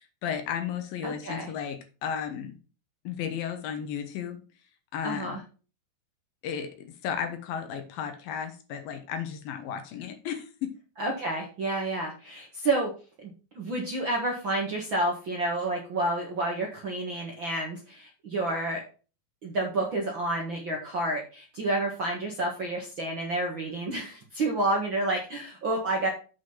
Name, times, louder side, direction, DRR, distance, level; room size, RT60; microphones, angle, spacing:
voice 1, 0.2-2.6 3.0-4.4 4.9-5.4 6.4-6.7 7.0-10.7, left 8 dB, 70° left, 8 dB, 2.8 m, -34 dB
voice 2, 1.0-1.5 5.0-5.4 11.0-12.9 13.2-13.3 13.5-18.8 19.4-26.1, right 2 dB, 50° right, 0 dB, 1.5 m, -29 dB
7.7 x 6.1 x 5.6 m, 0.35 s
omnidirectional pair, 4.5 m